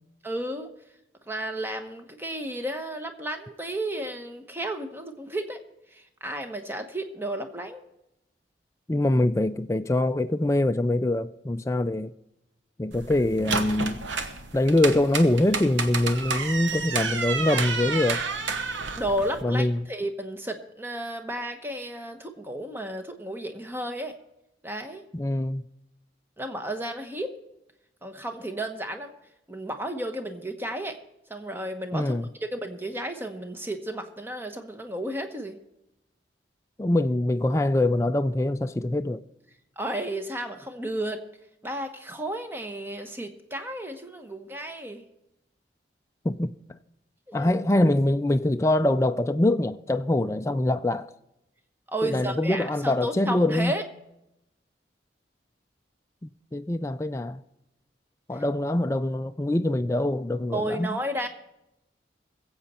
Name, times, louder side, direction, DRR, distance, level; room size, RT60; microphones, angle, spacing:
voice 1, 0.2-0.7 1.3-5.6 5.9-7.8 19.0-24.1 24.6-25.0 26.4-27.3 28.0-29.1 29.5-31.0 31.3-35.6 39.8-41.2 41.6-45.0 47.3-47.5 51.9-53.8 58.3-58.4 60.5-61.3, right 1 dB, 10° right, 1.0 m, -33 dB
voice 2, 8.9-12.1 12.8-14.0 14.5-18.2 19.4-19.9 25.1-25.6 31.9-32.3 36.8-39.2 46.2-46.5 47.3-51.1 52.0-53.7 56.2-57.4 58.3-61.0, left 1 dB, 15° left, 0.3 m, -24 dB
sound 1, 12.9-19.4, right 4 dB, 85° right, 1.1 m, -30 dB
21.5 x 7.9 x 4.3 m
head